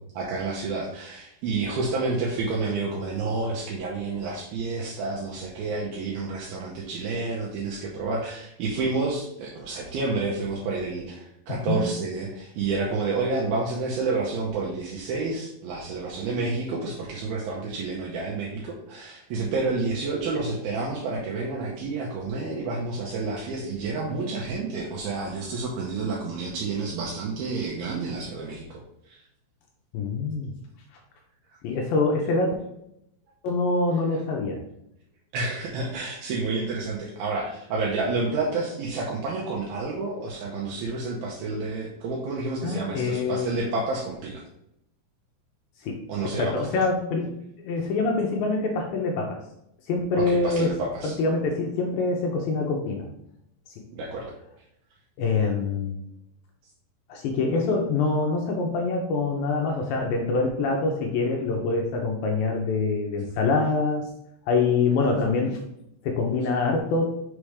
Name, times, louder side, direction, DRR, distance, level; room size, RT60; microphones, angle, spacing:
voice 1, 0.1-29.2 35.3-44.4 46.1-46.8 50.1-51.2 53.9-54.3, right 3 dB, 80° right, -3 dB, 2.6 m, -29 dB
voice 2, 11.5-11.8 29.9-30.5 31.6-32.5 33.4-34.6 42.6-43.5 45.8-46.0 46.4-47.4 47.6-49.4 49.9-50.7 51.0-53.1 53.7-53.8 55.2-56.0 57.1-64.1 64.5-65.6 66.0-67.1, left 3 dB, 80° left, 1 dB, 2.2 m, -25 dB
6.3 x 3.3 x 4.8 m, 0.79 s
omnidirectional pair, 4.6 m